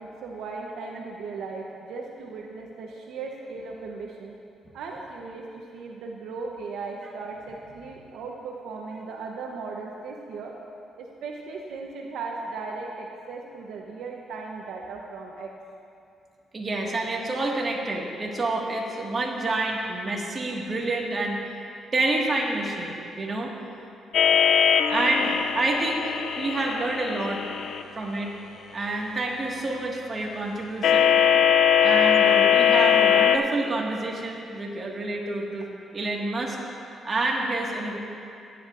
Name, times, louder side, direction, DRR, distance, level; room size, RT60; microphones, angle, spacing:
voice 1, 0.0-4.3 4.7-10.5 11.0-15.5, right 4 dB, 80° right, 0 dB, 0.9 m, -37 dB
voice 2, 16.5-21.4 21.9-23.5 24.9-27.4 27.9-28.3 28.7-31.1 31.8-36.6 37.0-38.0, right 2 dB, 35° right, -1 dB, 1.8 m, -28 dB
sound 1, 24.1-27.8 30.8-33.4, left 8 dB, 75° left, 0.4 m, -20 dB
17.0 x 10.0 x 2.5 m, 2.6 s
cardioid pair, 90°, 0 cm